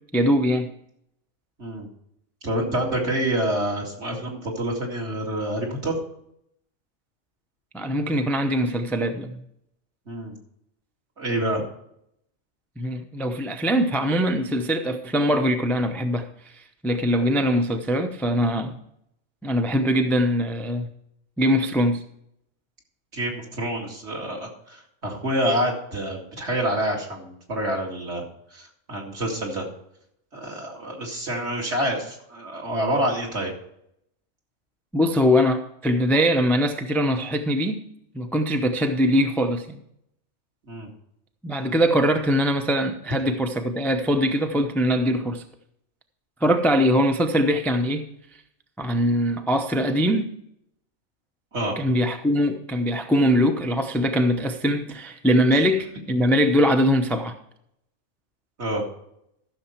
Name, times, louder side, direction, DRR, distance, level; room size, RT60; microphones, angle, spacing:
voice 1, 0.1-0.7 7.7-9.4 12.8-18.8 19.4-20.9 21.4-22.0 34.9-37.8 38.1-39.8 41.4-45.4 46.4-48.1 48.8-50.3 51.8-57.4, equal, ahead, 0.5 m, -22 dB
voice 2, 2.4-5.9 10.1-10.3 11.2-11.6 23.1-28.2 28.5-29.7 30.3-33.5 40.7-40.9 51.5-51.8 58.6-58.8, right 1 dB, 60° right, 2.7 m, -27 dB
14.0 x 6.6 x 4.4 m
omnidirectional pair, 1.3 m